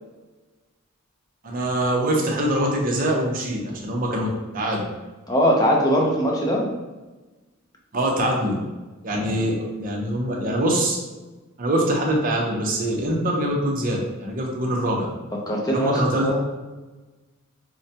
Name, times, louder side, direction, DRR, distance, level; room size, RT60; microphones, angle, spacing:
voice 1, 1.4-4.3 4.5-4.8 7.9-8.6 9.0-11.0 11.6-15.1 15.7-16.3, right 1 dB, 40° right, -1 dB, 0.7 m, -23 dB
voice 2, 5.3-6.7 9.1-9.5 15.5-16.4, equal, 20° left, -1 dB, 0.6 m, -21 dB
4.7 x 2.1 x 2.7 m, 1.2 s
head